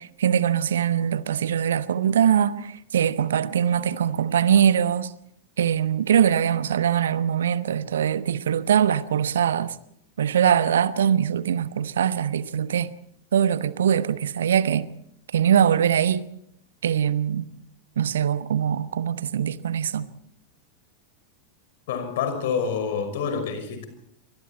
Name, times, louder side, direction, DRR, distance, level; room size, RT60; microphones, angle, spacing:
voice 1, 0.0-5.1 5.6-9.7 10.2-12.9 13.3-14.9 15.3-16.2 16.8-17.5 18.0-20.1, right 9 dB, 65° right, 1.1 m, -22 dB
voice 2, 21.9-23.9, left 6 dB, 55° left, 5.7 m, -27 dB
27.0 x 24.5 x 4.3 m
figure-of-eight pair, 90°, 0 cm